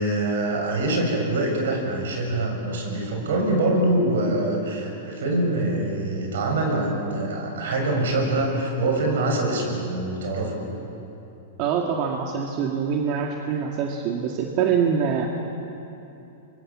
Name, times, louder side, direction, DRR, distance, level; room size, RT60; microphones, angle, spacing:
voice 1, 0.0-10.7, right 2 dB, 80° right, 2 dB, 7.0 m, -24 dB
voice 2, 11.6-15.3, right 7 dB, 45° right, 1 dB, 2.1 m, -24 dB
25.5 x 23.0 x 7.5 m, 2.9 s
hypercardioid pair, 125°, 0 cm